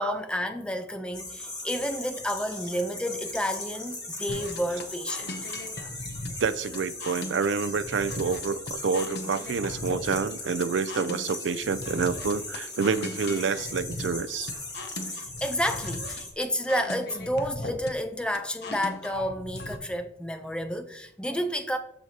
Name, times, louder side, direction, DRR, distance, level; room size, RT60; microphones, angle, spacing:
voice 1, 0.0-5.5 15.1-21.8, equal, 5° left, 0.6 m, -30 dB
sound 1, 1.1-16.3, left 2 dB, 20° left, 1.8 m, -38 dB
sound 2, 4.3-19.8, left 2 dB, 60° left, 0.9 m, -38 dB
voice 2, 6.4-14.5, right 5 dB, 80° right, 0.4 m, -28 dB
13.0 x 4.6 x 2.9 m
head